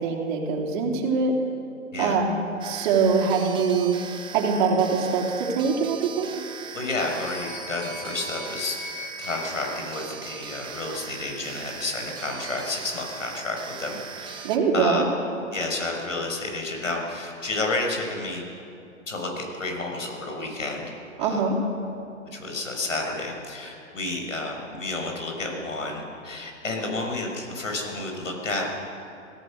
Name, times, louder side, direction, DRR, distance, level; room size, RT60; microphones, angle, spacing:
voice 1, 0.0-1.3 2.0-3.9 4.3-6.3 14.4-15.1 21.2-21.6, right 5 dB, 40° right, 0 dB, 3.9 m, -23 dB
sound 1, 2.6-14.6, right 7 dB, 10° right, 1.0 m, -40 dB
sound 2, 6.4-10.7, left 2 dB, 10° left, 4.7 m, -41 dB
voice 2, 6.7-8.8 9.2-14.5 14.7-15.0 15.5-18.4 19.1-20.8 21.2-21.4 22.3-28.7, left 2 dB, 75° left, 2 dB, 6.0 m, -30 dB
24.5 x 17.0 x 6.4 m, 2.7 s
figure-of-eight pair, 120°, 39 cm